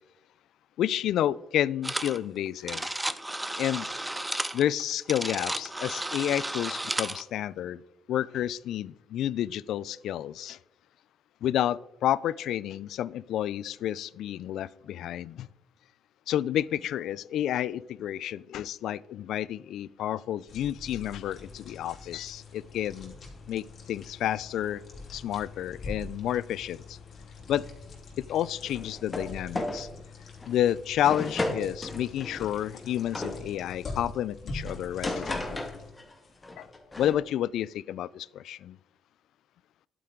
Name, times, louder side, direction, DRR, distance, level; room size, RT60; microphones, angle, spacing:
voice 1, 0.8-2.9 3.6-3.9 4.5-7.8 8.1-10.6 11.4-15.5 16.3-23.1 23.5-24.8 25.1-27.0 27.5-27.6 28.3-29.9 30.5-35.6 36.6-36.7 37.0-38.8, left 11 dB, 80° left, 21 dB, 0.3 m, -30 dB
sound 1, 1.8-2.2 2.5-7.2, right 1 dB, 10° right, 0.6 m, -33 dB
sound 2, 20.5-35.9, left 3 dB, 55° left, 2.9 m, -44 dB
sound 3, 28.7-29.3 29.5-29.8 30.4-30.6 31.0-33.4 34.7-36.1 36.4-37.2, left 2 dB, 20° left, 1.9 m, -34 dB
11.0 x 8.7 x 3.7 m, 0.88 s
cardioid pair, 90°, 0 cm